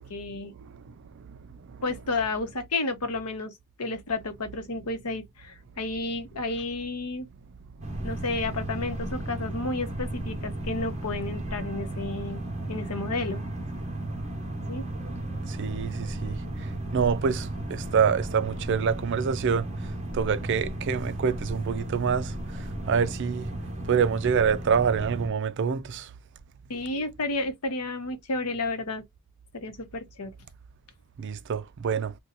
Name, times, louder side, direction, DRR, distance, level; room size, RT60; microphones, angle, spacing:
voice 1, 0.0-0.5 1.8-3.5 3.8-7.3 8.0-12.4 12.7-13.4 14.7-14.9 26.7-29.0 29.5-30.3, left 3 dB, 90° left, 0.9 m, -31 dB
voice 2, 0.6-1.4 1.7-1.8 15.5-16.4 16.9-19.7 20.1-23.5 23.9-26.1 31.2-32.1, right 6 dB, 55° right, 0.4 m, -26 dB
sound 1, 7.8-25.3, right 1 dB, 30° right, 0.9 m, -34 dB
2.7 x 2.3 x 3.8 m
head